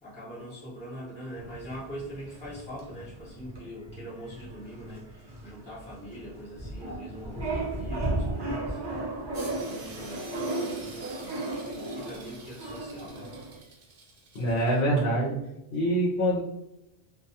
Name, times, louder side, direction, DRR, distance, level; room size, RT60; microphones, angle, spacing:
voice 1, 0.0-9.0 9.6-13.3, equal, 5° left, -10 dB, 0.7 m, -43 dB
sound 1, 1.3-13.6, right 2 dB, 30° right, 0.6 m, -35 dB
sound 2, 9.3-14.8, right 3 dB, 65° right, 0.7 m, -48 dB
voice 2, 14.3-15.4 15.7-16.4, right 1 dB, 70° left, -6 dB, 0.8 m, -25 dB
2.2 x 2.2 x 2.7 m, 0.87 s
omnidirectional pair, 1.1 m